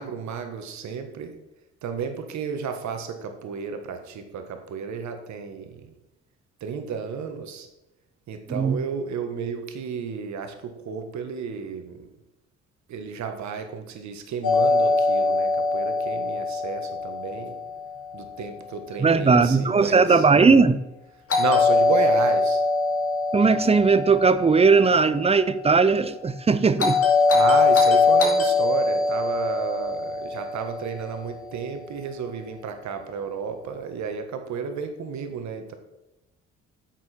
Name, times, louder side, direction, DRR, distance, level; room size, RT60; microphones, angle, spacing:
voice 1, 0.0-1.4 1.8-5.9 6.6-7.7 8.3-12.1 12.9-17.5 18.1-20.3 21.4-22.6 27.3-35.7, right 6 dB, 70° right, 6 dB, 1.4 m, -32 dB
Doorbell, 14.4-18.4 21.3-25.5 26.8-31.2, left 3 dB, 50° left, 2.5 m, -22 dB
voice 2, 19.0-20.8 23.3-27.0, right 4 dB, 20° right, 14 dB, 0.5 m, -18 dB
9.3 x 6.0 x 4.3 m, 0.95 s
cardioid pair, 85°, 29 cm